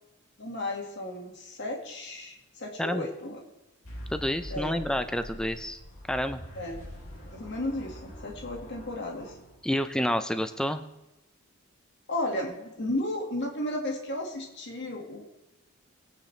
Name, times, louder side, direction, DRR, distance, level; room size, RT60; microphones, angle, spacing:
voice 1, 0.4-3.4 4.5-4.8 6.6-6.8 7.3-9.3 12.1-15.3, left 1 dB, 55° left, 1 dB, 1.9 m, -34 dB
sound 1, 3.8-10.0, equal, 75° left, 3.7 m, -44 dB
voice 2, 4.1-5.8 6.1-6.4 9.6-10.8, equal, 5° left, 9 dB, 0.5 m, -29 dB
20.0 x 8.9 x 3.3 m, 0.96 s
head